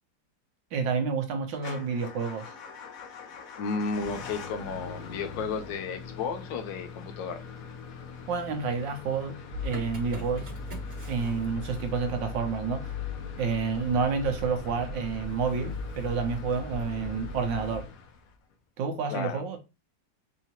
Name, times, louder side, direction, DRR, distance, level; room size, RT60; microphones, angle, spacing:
voice 1, 0.7-2.5 8.3-9.4 9.6-10.5 11.1-12.9 13.4-17.9 18.8-19.6, right 5 dB, 90° right, 1.6 m, -29 dB
Motor vehicle (road) / Engine starting / Idling, 1.6-18.5, left 5 dB, 60° left, 1.0 m, -44 dB
voice 2, 3.6-7.4 19.1-19.4, left 4 dB, 85° left, 1.4 m, -33 dB
Motor vehicle (road) / Engine starting, 9.5-17.8, left 2 dB, 45° right, 1.6 m, -38 dB
4.8 x 2.8 x 2.9 m
omnidirectional pair, 1.9 m